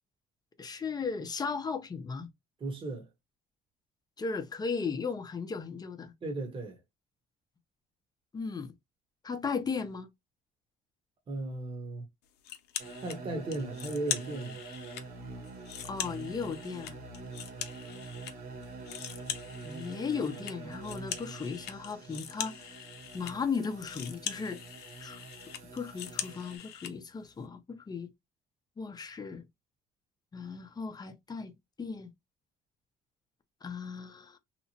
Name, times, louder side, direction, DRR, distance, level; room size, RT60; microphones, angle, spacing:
voice 1, 0.6-2.3 4.2-6.1 8.3-8.7 9.2-10.1 15.8-17.0 19.6-22.9 23.1-24.6 25.0-25.2 25.7-28.1 28.8-29.4 30.3-31.5 31.8-32.1 33.6-34.4, left 5 dB, 25° left, 0.6 m, -36 dB
voice 2, 2.6-3.1 6.2-6.8 11.3-12.0 13.0-14.6, right 2 dB, 30° right, 1.0 m, -36 dB
sound 1, 12.4-13.2 13.5-15.0 15.4-18.3 18.6-26.9, left 10 dB, 75° left, 0.6 m, -41 dB
sound 2, 12.8-26.6, right 3 dB, 60° right, 1.1 m, -45 dB
2.9 x 2.0 x 2.8 m
cardioid pair, 110°, 17 cm